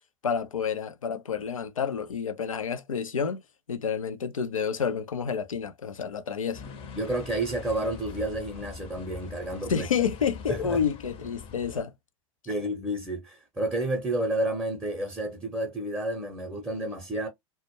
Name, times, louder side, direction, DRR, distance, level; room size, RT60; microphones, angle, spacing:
voice 1, 0.2-3.4 3.7-6.6 9.7-11.9, left 7 dB, 85° left, 0.4 m, -29 dB
sound 1, 6.5-11.8, left 5 dB, 35° left, 0.6 m, -43 dB
voice 2, 6.9-9.9 10.5-10.8 12.5-17.3, right 1 dB, 5° right, 0.6 m, -30 dB
2.1 x 2.0 x 2.9 m
figure-of-eight pair, 90°, 17 cm